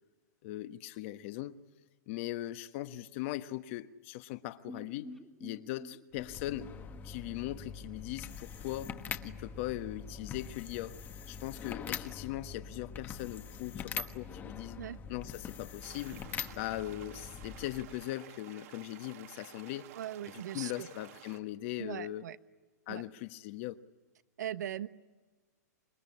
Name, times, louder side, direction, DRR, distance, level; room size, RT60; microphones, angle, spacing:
voice 1, 0.4-1.6 2.1-5.1 5.4-6.7 7.0-11.0 11.3-14.8 15.1-16.2 16.5-19.9 20.3-22.2 22.9-23.8, left 15 dB, 45° left, 1.3 m, -40 dB
sound 1, 4.6-8.5 8.8-8.9 9.2-9.3, left 1 dB, ahead, 1.9 m, -51 dB
sound 2, 6.1-18.1, left 6 dB, 20° left, 1.3 m, -44 dB
sound 3, 15.8-21.4, right 12 dB, 55° right, 2.0 m, -53 dB
voice 2, 19.9-20.9 21.8-22.4 22.9-23.0 24.4-24.9, right 11 dB, 75° right, 1.2 m, -39 dB
26.5 x 22.0 x 9.8 m
hypercardioid pair, 140°, 9 cm